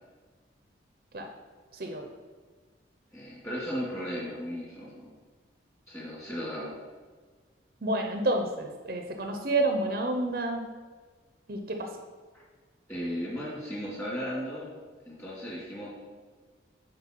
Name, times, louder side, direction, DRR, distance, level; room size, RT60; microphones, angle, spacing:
voice 1, 3.1-5.1 5.9-6.7 12.9-14.7 15.1-15.9, equal, 15° left, -5 dB, 2.5 m, -35 dB
voice 2, 7.8-10.7 11.5-11.9, right 2 dB, 50° right, 4 dB, 0.7 m, -29 dB
7.8 x 5.2 x 4.5 m, 1.5 s
head